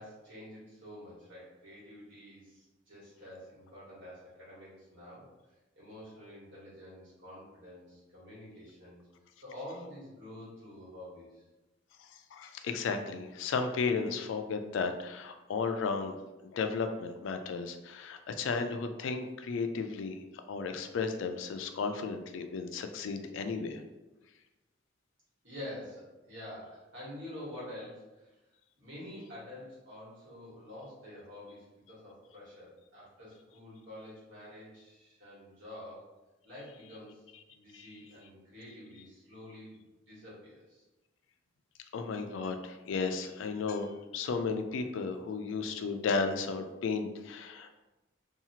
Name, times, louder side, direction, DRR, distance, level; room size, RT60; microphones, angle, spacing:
voice 1, 0.0-5.3 5.7-9.0 9.4-11.4 25.4-28.4 28.8-36.1 36.4-37.2 37.5-40.8, left 1 dB, 65° right, -8 dB, 1.4 m, -48 dB
voice 2, 12.0-16.2 16.4-23.8 37.7-38.0 41.9-47.8, left 4 dB, 75° left, 7 dB, 0.3 m, -34 dB
2.8 x 2.3 x 2.8 m, 1.1 s
head